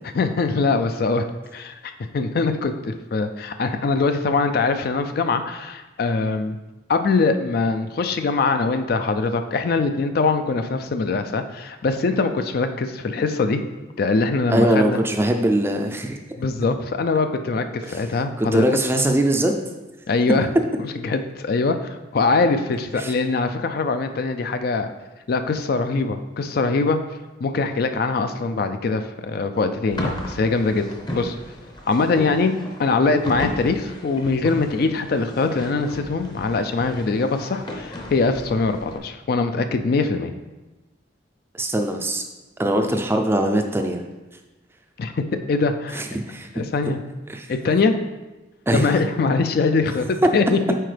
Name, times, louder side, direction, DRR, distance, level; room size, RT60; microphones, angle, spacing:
voice 1, 0.1-1.3 1.5-6.6 6.9-13.6 14.0-15.0 16.4-18.7 20.1-20.5 21.0-24.9 25.3-27.0 27.4-30.8 31.1-31.4 31.9-40.3 45.0-46.0 46.5-47.0 47.5-47.9 48.7-50.8, left 3 dB, 50° left, 8 dB, 0.4 m, -22 dB
voice 2, 14.5-16.2 17.9-18.0 18.4-19.5 23.0-23.1 41.5-42.2 42.6-44.0 45.9-46.9 47.3-47.5 48.7-48.9, right 1 dB, 10° right, 5 dB, 0.4 m, -21 dB
sound 1, 29.9-39.0, left 1 dB, 25° left, 0.7 m, -35 dB
7.6 x 4.7 x 3.3 m, 1.1 s
head